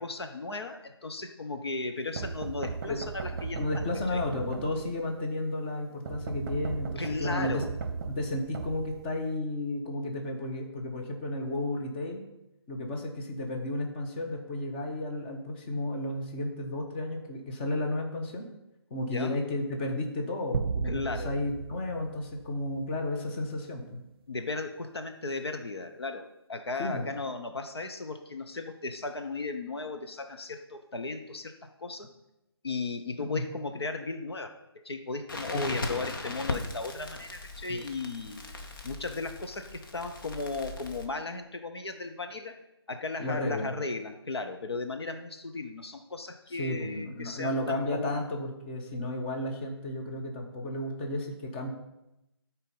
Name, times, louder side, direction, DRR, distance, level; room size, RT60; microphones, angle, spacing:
voice 1, 0.0-3.6 4.1-4.2 7.0-7.7 19.1-19.3 20.9-21.3 24.3-32.1 32.6-38.4 38.8-42.6 42.9-48.2, left 3 dB, 70° left, 6 dB, 0.9 m, -36 dB
sound 1, 2.2-5.1 6.1-9.4, right 5 dB, 40° right, 0.8 m, -37 dB
voice 2, 3.5-7.6 8.1-12.2 12.7-18.4 18.9-24.0 26.8-27.0 33.3-33.4 35.5-35.8 37.7-37.8 43.2-43.8 46.5-51.7, left 1 dB, 25° left, 2 dB, 1.2 m, -33 dB
sound 2, 20.5-23.1, right 5 dB, 60° right, 0.4 m, -35 dB
Crackle, 35.3-41.1, left 2 dB, 50° left, 1.2 m, -38 dB
12.5 x 4.5 x 5.5 m, 0.91 s
figure-of-eight pair, 145°, 14 cm